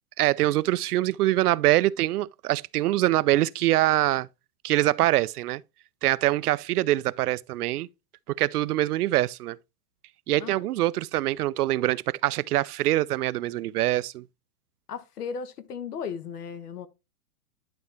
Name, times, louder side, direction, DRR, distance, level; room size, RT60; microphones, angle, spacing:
voice 1, 0.2-4.3 4.6-5.6 6.0-7.9 8.3-9.6 10.3-14.2, right 15 dB, 80° right, 0.5 m, -24 dB
voice 2, 14.9-16.9, left 6 dB, 85° left, 1.2 m, -35 dB
10.5 x 4.2 x 3.3 m
hypercardioid pair, 155°, 45 cm